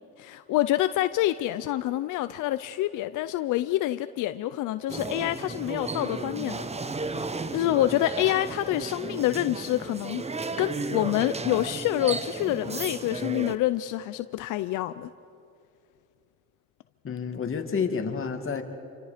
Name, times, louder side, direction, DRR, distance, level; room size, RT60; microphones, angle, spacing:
voice 1, 0.2-6.7 7.1-7.3 7.5-10.2 10.6-15.1, left 14 dB, 90° left, 12 dB, 0.6 m, -27 dB
sound 1, 4.9-13.6, right 3 dB, 20° right, 1.0 m, -34 dB
voice 2, 17.0-18.6, left 6 dB, 45° left, 4 dB, 2.4 m, -29 dB
28.0 x 25.0 x 5.1 m, 2.5 s
cardioid pair, 90°, 30 cm